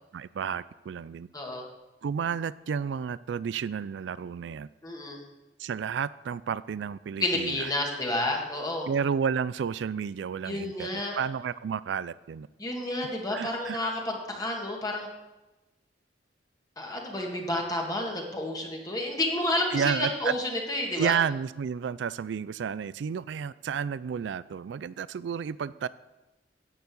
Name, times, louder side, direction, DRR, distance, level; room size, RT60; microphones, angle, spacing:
voice 1, 0.1-1.3 2.0-4.7 5.6-7.7 8.9-12.5 13.3-13.8 19.7-20.3 21.0-25.9, right 7 dB, 70° right, 18 dB, 0.3 m, -31 dB
voice 2, 4.8-5.2 7.2-8.9 10.5-11.2 12.6-15.1 16.8-21.2, left 1 dB, 20° left, -1 dB, 1.9 m, -30 dB
10.0 x 7.1 x 8.4 m, 1.0 s
head